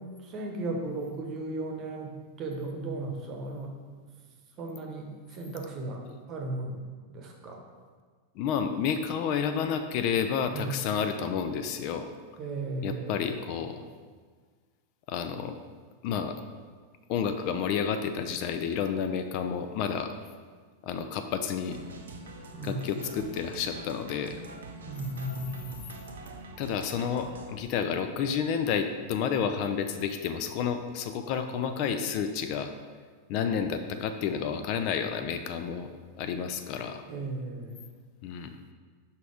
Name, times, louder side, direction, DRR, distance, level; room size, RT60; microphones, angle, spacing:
voice 1, 0.2-3.7 4.6-6.0 6.3-6.8 7.1-7.6 10.5-10.8 12.4-13.3 22.5-22.9 24.8-25.9 37.1-37.9, right 2 dB, 35° right, 2 dB, 1.0 m, -36 dB
voice 2, 8.4-12.1 12.8-13.8 15.1-15.6 16.0-16.4 17.1-20.1 20.8-21.8 22.6-24.4 26.6-32.7 33.3-35.9 36.2-37.0 38.2-38.6, left 7 dB, 45° left, 8 dB, 0.4 m, -30 dB
sound 1, 21.7-27.5, right 2 dB, 65° right, 0.5 m, -44 dB
5.5 x 4.1 x 4.9 m, 1.5 s
figure-of-eight pair, 90°, 0 cm